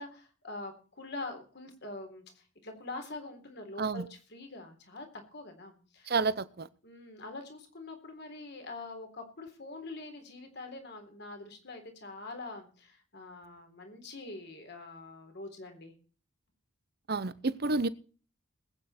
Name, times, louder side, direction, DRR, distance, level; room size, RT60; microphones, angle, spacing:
voice 1, 0.0-6.1 6.8-15.9, left 2 dB, 50° left, 3.7 m, -44 dB
voice 2, 6.1-6.7 17.1-17.9, right 3 dB, 50° right, 0.8 m, -30 dB
20.5 x 9.0 x 4.3 m
head